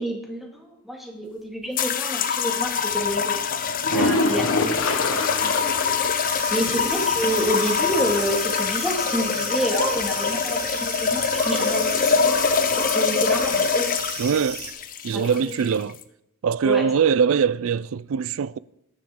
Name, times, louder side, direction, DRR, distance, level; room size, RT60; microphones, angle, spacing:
voice 1, 0.0-3.4 3.9-4.5 5.4-5.5 6.5-12.4 12.7-13.9 15.1-15.5 16.6-16.8, equal, ahead, 2.0 m, -28 dB
sound 1, 1.8-16.0, left 6 dB, 40° left, 0.6 m, -24 dB
sound 2, 3.8-6.1 6.4-6.5 6.9-7.0 10.8-10.9, left 2 dB, 65° left, 1.2 m, -24 dB
voice 2, 3.9-4.2 14.2-14.6 15.0-16.0 16.4-18.6, right 6 dB, 65° right, 0.3 m, -22 dB
sound 3, 6.2-14.7, right 5 dB, 45° right, 1.8 m, -34 dB
19.5 x 7.2 x 3.8 m
head